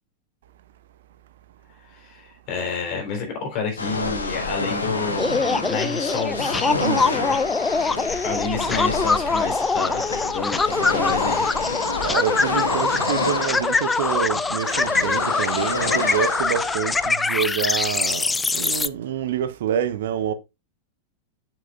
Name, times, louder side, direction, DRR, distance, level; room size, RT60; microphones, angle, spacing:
voice 1, 1.8-7.4 8.2-11.5, left 5 dB, 40° left, 4.0 m, -30 dB
sound 1, 3.8-17.1, left 3 dB, 75° left, 1.3 m, -29 dB
sound 2, 5.2-18.9, left 4 dB, 10° left, 0.3 m, -23 dB
voice 2, 6.8-7.2 12.0-20.3, right 8 dB, 60° right, 0.7 m, -27 dB
7.5 x 7.4 x 2.5 m
figure-of-eight pair, 90°, 0 cm